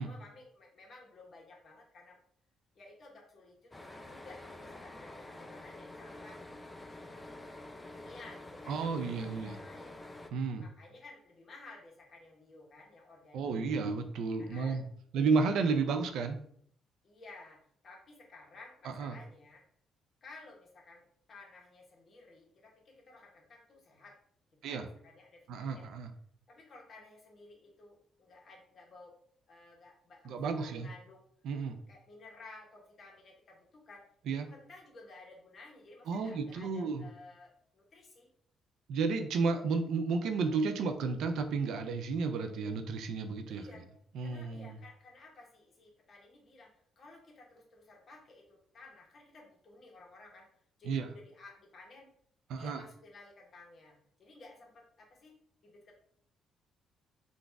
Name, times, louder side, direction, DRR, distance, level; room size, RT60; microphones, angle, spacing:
voice 1, 0.0-2.2 2.7-6.4 6.9-7.6 7.9-10.0 10.5-13.7 14.4-14.8 15.6-15.8 17.0-19.6 20.2-21.0 21.3-24.2 24.7-25.9 26.5-29.1 29.5-31.2 31.9-34.0 34.5-38.3 43.5-43.8 44.2-50.5 50.8-52.1 52.5-55.4 55.6-55.9, left 3 dB, 50° left, -1 dB, 1.2 m, -55 dB
sound 1, 3.7-10.3, left 2 dB, 20° left, 0.5 m, -48 dB
voice 2, 8.7-9.6 10.3-10.7 13.3-14.9 15.1-16.4 18.8-19.1 24.6-24.9 25.5-26.1 30.2-30.9 31.4-31.8 34.3-34.5 36.1-37.1 38.9-43.6 44.1-44.8 50.9-51.1 52.5-52.8, right 4 dB, 80° right, 7 dB, 0.4 m, -32 dB
3.9 x 2.4 x 3.4 m, 0.64 s
cardioid pair, 90°, 0 cm